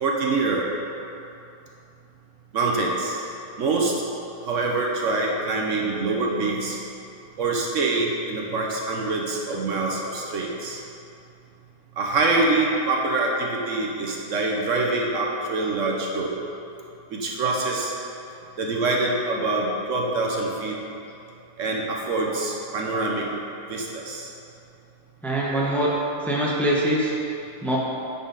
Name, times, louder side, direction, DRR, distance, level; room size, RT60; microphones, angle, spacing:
voice 1, 0.0-0.7 2.5-3.2 3.6-3.9 4.4-6.8 7.4-10.8 12.0-16.3 17.1-17.9 18.6-20.7 21.6-23.2 23.7-24.3, right 3 dB, 65° right, -1 dB, 1.2 m, -25 dB
voice 2, 25.2-25.9 26.2-27.1 27.6-27.8, right 1 dB, ahead, -5 dB, 0.9 m, -23 dB
9.9 x 5.4 x 4.0 m, 2.7 s
omnidirectional pair, 1.5 m